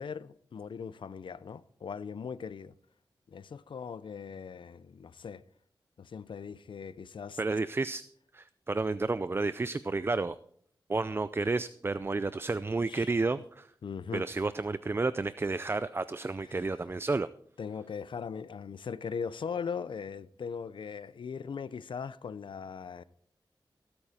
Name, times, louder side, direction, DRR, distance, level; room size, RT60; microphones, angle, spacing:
voice 1, 0.0-2.7 3.3-5.4 6.0-7.4 12.9-13.1 13.8-14.2 16.4-16.6 17.6-23.0, left 6 dB, 75° left, 0.6 m, -39 dB
voice 2, 7.4-8.0 8.3-10.4 10.9-13.7 14.1-17.3, right 3 dB, 25° right, 0.4 m, -31 dB
17.5 x 8.7 x 4.3 m
wide cardioid pair, 75°, 9 cm